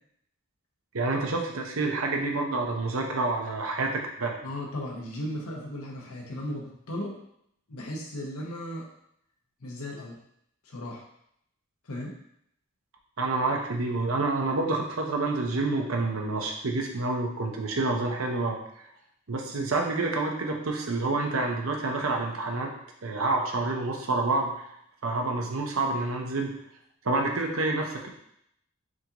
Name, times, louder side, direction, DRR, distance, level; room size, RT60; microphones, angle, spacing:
voice 1, 0.9-4.4 13.2-18.6 19.3-22.7 23.0-24.7 25.0-26.5 27.0-28.1, right 3 dB, 70° right, 1 dB, 0.7 m, -28 dB
voice 2, 4.4-7.1 7.7-8.9 9.6-10.2 10.6-11.0 11.8-12.1, left 1 dB, 85° left, -1 dB, 1.0 m, -36 dB
6.3 x 2.5 x 3.0 m, 0.73 s
head